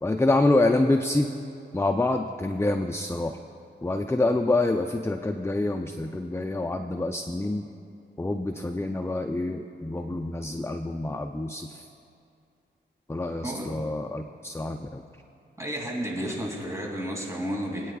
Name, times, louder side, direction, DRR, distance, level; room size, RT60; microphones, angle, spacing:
voice 1, 0.0-1.3 1.7-3.4 3.8-7.6 8.2-11.9 13.1-15.0, left 2 dB, 10° left, 4 dB, 0.6 m, -26 dB
voice 2, 13.4-13.8 15.6-17.9, equal, 15° right, -1 dB, 2.7 m, -32 dB
25.5 x 9.2 x 2.4 m, 2.5 s
cardioid pair, 55°, 20 cm